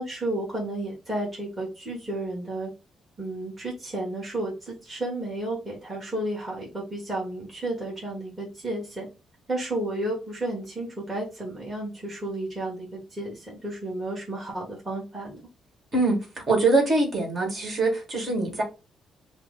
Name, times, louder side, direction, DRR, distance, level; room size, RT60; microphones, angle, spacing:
voice 1, 0.0-2.7 3.2-9.1 9.5-15.4, right 1 dB, 5° right, -3 dB, 1.6 m, -32 dB
voice 2, 16.5-18.6, right 2 dB, 30° right, 0 dB, 2.0 m, -23 dB
5.7 x 2.1 x 3.9 m, 0.30 s
cardioid pair, 160°, 0 cm